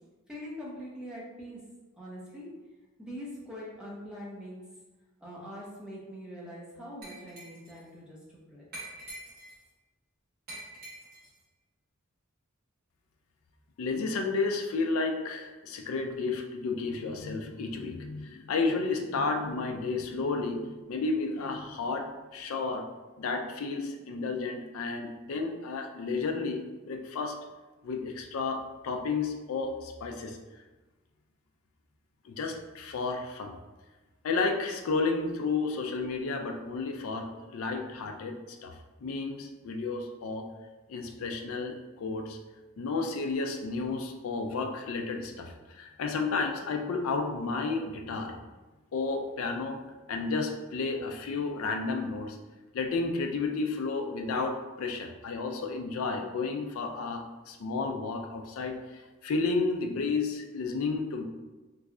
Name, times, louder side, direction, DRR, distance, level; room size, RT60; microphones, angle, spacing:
voice 1, 0.3-1.6 2.0-2.5 3.0-4.6 5.2-8.7, equal, 5° right, -6 dB, 0.7 m, -43 dB
Glass, 7.0-7.8 8.7-9.7 10.5-11.4, right 1 dB, 45° right, 1.2 m, -45 dB
voice 2, 13.8-22.8 23.2-27.4 27.8-30.4 32.2-33.5 34.2-38.8 39.0-40.5 40.9-42.4 42.8-48.4 48.9-49.8 50.1-52.4 52.7-61.2, left 4 dB, 75° left, 3 dB, 0.4 m, -32 dB
3.1 x 2.3 x 3.6 m, 1.2 s
head